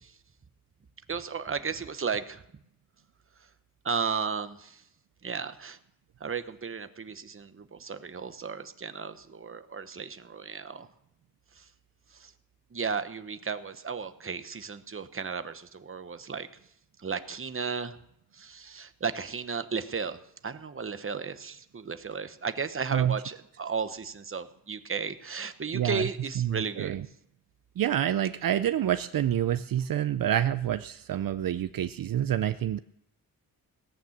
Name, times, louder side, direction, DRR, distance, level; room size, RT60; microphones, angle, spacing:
voice 1, 1.1-2.4 3.8-4.8 5.2-5.8 6.2-10.9 12.2-12.3 12.7-16.5 17.0-18.0 18.4-20.2 20.4-27.0, right 5 dB, 40° right, 11 dB, 1.0 m, -34 dB
voice 2, 25.7-26.1 26.4-27.0 27.8-32.8, right 11 dB, 75° right, 13 dB, 0.5 m, -27 dB
17.5 x 9.3 x 7.3 m, 0.77 s
wide cardioid pair, 100°, 35 cm